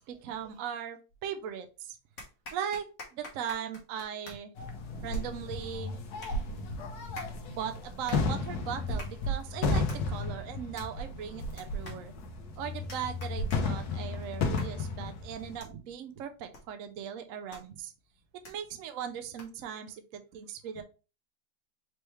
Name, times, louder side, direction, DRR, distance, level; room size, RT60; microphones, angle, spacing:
voice 1, 0.0-2.0 2.5-2.8 3.1-4.5 5.0-5.9 7.6-12.1 12.6-17.9 18.5-20.8, right 8 dB, 70° right, 0.9 m, -39 dB
sound 1, 1.1-1.6 2.2-19.7, left 2 dB, 55° left, 1.5 m, -52 dB
sound 2, 4.6-15.6, left 3 dB, 80° left, 1.3 m, -33 dB
voice 2, 6.3-7.6 15.6-15.8 20.7-20.8, right 6 dB, 85° right, 1.3 m, -48 dB
4.5 x 3.2 x 3.0 m
omnidirectional pair, 1.6 m